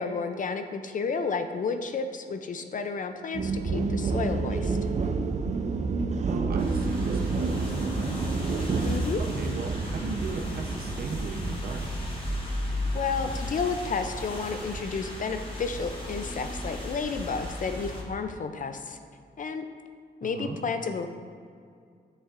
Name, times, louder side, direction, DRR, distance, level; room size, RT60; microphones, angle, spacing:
voice 1, 0.0-4.8 8.8-9.2 12.9-19.0 19.4-19.7 20.2-21.1, left 5 dB, 50° left, 8 dB, 0.4 m, -31 dB
sound 1, 3.3-11.6, right 4 dB, 40° right, 0.4 m, -29 dB
voice 2, 6.3-7.2 7.4-8.5 9.3-11.9 20.2-20.6, right 3 dB, 60° right, 2 dB, 0.7 m, -36 dB
sound 2, 6.6-18.0, left 1 dB, 30° left, 1.3 m, -35 dB
7.9 x 6.4 x 2.5 m, 2.2 s
wide cardioid pair, 110°, 18 cm